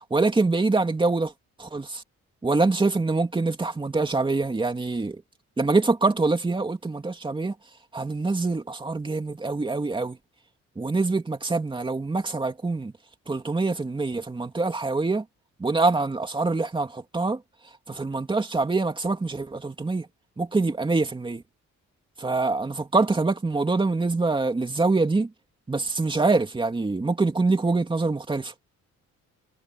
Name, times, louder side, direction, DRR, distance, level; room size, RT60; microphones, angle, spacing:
voice 1, 0.1-1.3 1.6-2.0 2.4-5.2 5.6-7.5 7.9-10.2 10.8-12.9 13.3-15.2 15.6-17.4 17.9-20.1 20.4-21.4 22.2-25.3 25.7-28.5, right 3 dB, 15° right, 2.8 m, -25 dB
wide cardioid pair, 160°, 30 cm